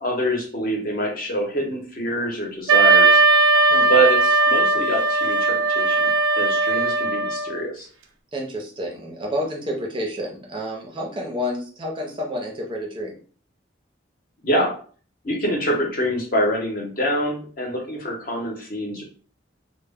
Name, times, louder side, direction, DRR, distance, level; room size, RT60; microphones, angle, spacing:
voice 1, 0.0-3.2 3.9-6.1 6.4-7.9 14.4-14.7 15.2-19.0, right 1 dB, 45° left, 0 dB, 0.7 m, -25 dB
Wind instrument woodwind instrument, 2.7-7.6, right 3 dB, 80° right, 0.4 m, -18 dB
voice 2, 8.3-13.1, equal, 25° right, -1 dB, 0.5 m, -29 dB
2.0 x 2.0 x 3.4 m, 0.42 s
head